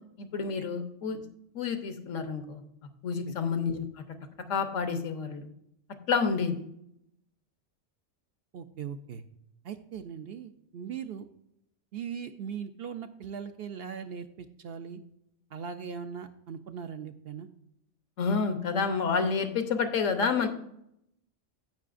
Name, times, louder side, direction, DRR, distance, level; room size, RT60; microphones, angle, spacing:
voice 1, 0.2-1.2 1.5-2.6 3.0-3.9 4.5-5.5 6.1-6.5 18.2-20.5, left 5 dB, 80° left, 8 dB, 1.3 m, -29 dB
voice 2, 8.5-9.2 9.6-11.3 11.9-15.0 15.5-17.5, right 7 dB, 60° right, 8 dB, 0.7 m, -39 dB
15.5 x 5.5 x 2.5 m, 0.77 s
omnidirectional pair, 1.3 m